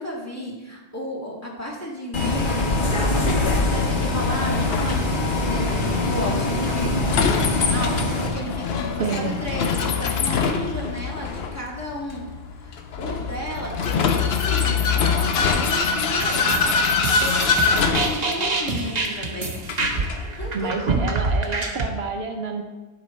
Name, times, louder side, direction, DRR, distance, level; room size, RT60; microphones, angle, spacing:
voice 1, 0.0-12.2 12.6-19.8 20.2-21.2, equal, 15° left, -4 dB, 1.9 m, -33 dB
Bus, 2.1-8.3, left 2 dB, 50° left, 1.4 m, -23 dB
Vehicle, 3.3-21.3, left 5 dB, 70° left, 0.9 m, -25 dB
voice 2, 9.0-9.4 20.5-22.6, right 4 dB, 70° right, 4 dB, 1.0 m, -28 dB
sound 1, 16.2-21.9, right 3 dB, 40° right, 1.0 m, -26 dB
10.5 x 5.4 x 4.2 m, 1.1 s
omnidirectional pair, 1.1 m